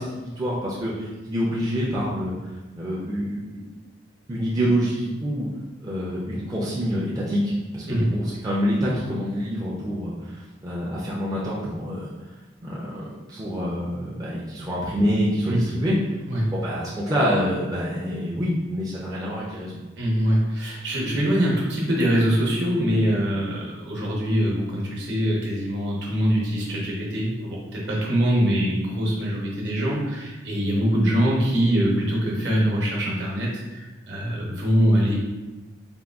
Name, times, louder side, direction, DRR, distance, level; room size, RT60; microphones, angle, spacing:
voice 1, 0.0-2.3 2.7-3.6 4.3-5.5 5.8-12.1 12.6-15.9 16.5-19.7, equal, 20° right, -7 dB, 0.4 m, -26 dB
voice 2, 20.0-35.1, equal, 65° right, -4 dB, 0.8 m, -23 dB
3.6 x 2.2 x 2.3 m, 1.1 s
head